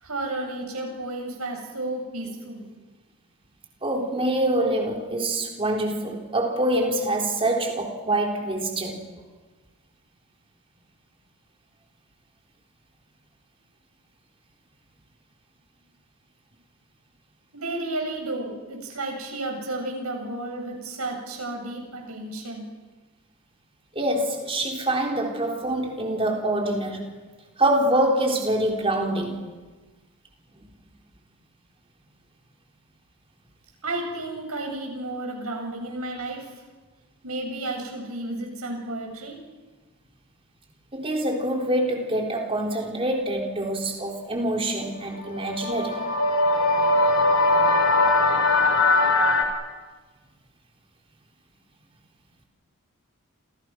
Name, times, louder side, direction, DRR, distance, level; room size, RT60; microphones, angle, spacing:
voice 1, 0.0-2.7 17.5-22.7 33.8-36.5 37.2-39.4, right 2 dB, 80° right, 2 dB, 7.9 m, -32 dB
voice 2, 3.8-9.0 23.9-27.1 27.6-29.4 30.6-30.7 40.9-46.1, right 1 dB, 25° right, 1 dB, 3.9 m, -25 dB
sound 1, 45.2-49.4, left 2 dB, 60° left, 4.1 m, -20 dB
28.5 x 28.5 x 6.2 m, 1.3 s
head